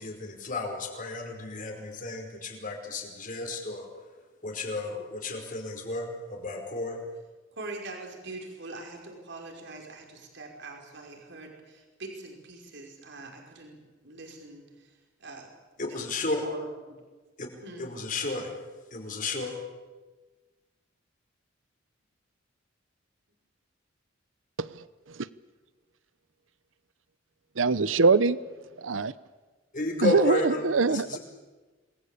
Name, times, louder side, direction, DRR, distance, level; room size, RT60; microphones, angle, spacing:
voice 1, 0.0-3.9 4.4-7.1 15.8-16.4 17.4-17.5 17.8-18.6 18.9-19.6 29.7-31.2, left 2 dB, 45° left, 5.1 m, -32 dB
voice 2, 7.5-14.9 15.2-15.5 15.8-16.0 16.4-17.0 17.6-17.9, right 2 dB, 65° right, 5.4 m, -43 dB
voice 3, 24.6-25.3 27.6-28.4 28.8-29.1 30.0-31.2, right 4 dB, 85° right, 0.8 m, -24 dB
27.5 x 21.0 x 8.4 m
head